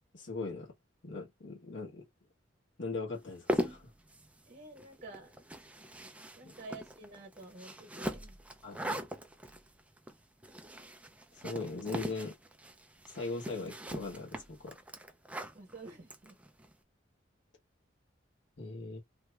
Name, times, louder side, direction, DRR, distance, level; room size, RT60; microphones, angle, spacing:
voice 1, 0.1-0.7 1.0-2.1 2.8-3.9 6.4-6.5 8.6-9.1 11.4-12.3 13.1-14.8 18.6-19.0, left 3 dB, 70° left, 1.3 m, -40 dB
sound 1, 3.2-16.7, equal, 5° right, 0.4 m, -41 dB
voice 2, 4.5-5.3 6.3-8.4 15.5-16.4, right 2 dB, 40° right, 1.0 m, -49 dB
2.9 x 2.3 x 3.2 m
head